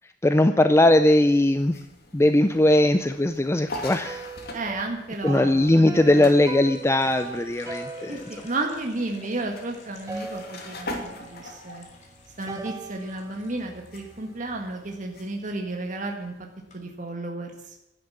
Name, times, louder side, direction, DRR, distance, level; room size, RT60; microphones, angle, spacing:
voice 1, 0.2-1.8 2.1-4.3 5.2-8.2, left 1 dB, 15° left, 10 dB, 0.5 m, -19 dB
sound 1, 1.1-17.1, left 1 dB, 55° left, 2.7 m, -43 dB
sound 2, 3.9-9.7 10.1-11.2 12.5-14.7, right 3 dB, 15° right, 0.9 m, -40 dB
sound 3, 4.2-4.6 6.1-14.0 14.3-14.9 15.3-15.6 16.3-16.4 16.7-16.8, left 3 dB, 40° left, 3.1 m, -50 dB
voice 2, 4.5-6.3 8.1-11.8 12.4-16.3 16.7-17.5, right 2 dB, 45° right, 2 dB, 1.7 m, -32 dB
12.0 x 10.0 x 8.6 m, 0.96 s
head